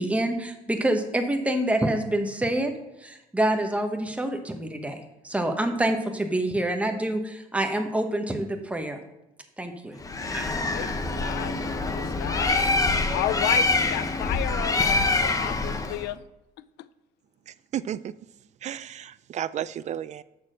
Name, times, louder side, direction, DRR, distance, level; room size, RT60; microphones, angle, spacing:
voice 1, 0.0-2.7 3.0-9.0 9.6-10.0 10.3-10.6, right 1 dB, 10° right, 1.1 m, -27 dB
Bird, 10.0-16.1, left 3 dB, 20° left, 0.8 m, -25 dB
voice 2, 11.2-11.6 12.0-12.6 13.1-16.2 16.6-16.9, left 14 dB, 80° left, 0.4 m, -32 dB
voice 3, 17.5-18.1 18.6-20.2, right 10 dB, 45° right, 0.4 m, -33 dB
6.7 x 6.0 x 6.3 m
cardioid pair, 110°, 17 cm